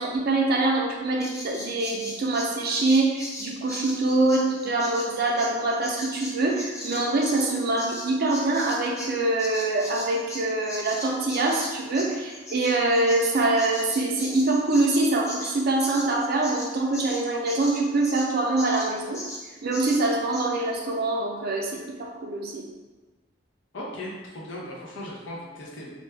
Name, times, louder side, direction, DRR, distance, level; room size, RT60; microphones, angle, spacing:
voice 1, 0.0-19.2 19.6-22.6, right 2 dB, 55° right, 0 dB, 0.5 m, -24 dB
Bird vocalization bird call bird song, 1.2-9.1 9.4-18.3 18.6-18.9 19.1-19.4 19.7-20.0 20.3-20.4, left 1 dB, 15° left, 0.4 m, -38 dB
voice 2, 23.7-25.9, left 1 dB, 75° left, -4 dB, 0.7 m, -37 dB
2.5 x 2.2 x 3.2 m, 1.2 s
head